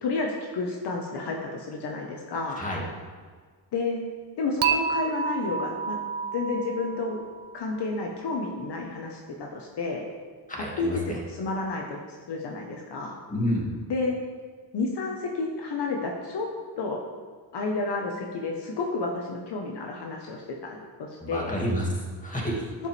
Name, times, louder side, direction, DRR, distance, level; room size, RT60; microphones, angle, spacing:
voice 1, 0.0-2.6 3.7-4.0 4.4-6.0 6.3-7.2 7.5-10.1 10.8-13.2 13.9-14.2 14.7-16.5 16.8-17.0 17.5-20.8 21.3-21.6 22.8-22.9, left 3 dB, 60° left, 1 dB, 1.3 m, -30 dB
voice 2, 2.5-2.8 10.5-11.2 13.3-13.7 21.2-22.7, equal, 15° left, -2 dB, 2.2 m, -29 dB
Dishes pots and pans / Chink clink, 4.6-7.8, right 7 dB, 90° right, 0.8 m, -29 dB
11.0 x 8.2 x 3.5 m, 1.6 s
cardioid pair, 120°, 46 cm